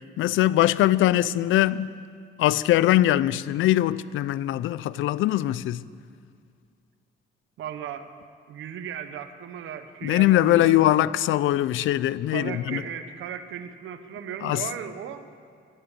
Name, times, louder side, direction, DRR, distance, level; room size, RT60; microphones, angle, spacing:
voice 1, 0.2-1.9 2.4-5.8 10.0-12.8 14.4-14.6, left 14 dB, 80° left, 0.5 m, -22 dB
voice 2, 7.6-8.1 8.5-10.8 12.3-15.3, right 8 dB, 80° right, 1.2 m, -36 dB
16.5 x 12.5 x 6.9 m
cardioid pair, 90°, 20 cm